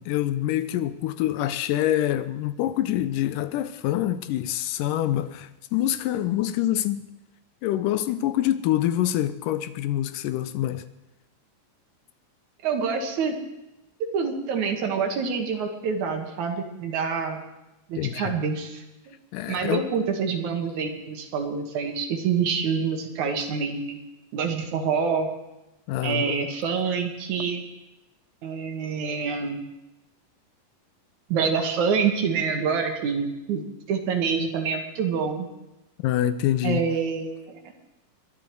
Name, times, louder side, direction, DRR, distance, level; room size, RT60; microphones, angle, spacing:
voice 1, 0.0-7.0 7.6-10.8 18.0-18.3 19.3-19.8 25.9-26.5 36.0-36.8, left 12 dB, 80° left, 13 dB, 2.3 m, -26 dB
voice 2, 12.6-13.4 14.1-17.4 17.9-19.2 19.5-24.0 24.3-25.3 26.0-27.6 28.4-29.6 31.3-35.5 36.6-37.6, right 6 dB, 65° right, 4 dB, 2.8 m, -26 dB
22.5 x 11.0 x 4.6 m, 0.96 s
omnidirectional pair, 3.9 m